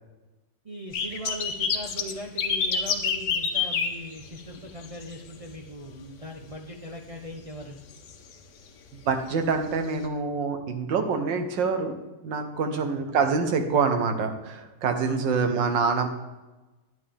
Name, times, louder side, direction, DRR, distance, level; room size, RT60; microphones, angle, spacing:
voice 1, 0.6-7.8 12.7-13.0 15.0-15.3, equal, 65° right, -1 dB, 0.3 m, -40 dB
sound 1, 0.9-5.1 5.4-5.7 6.2-6.3 7.5-7.7 8.1-8.2 9.3-9.4 10.0-10.1, left 6 dB, 70° left, 1.4 m, -27 dB
voice 2, 9.1-12.0 12.2-16.1, right 5 dB, 85° right, 6 dB, 1.7 m, -26 dB
10.5 x 9.2 x 3.4 m, 1.1 s
omnidirectional pair, 1.9 m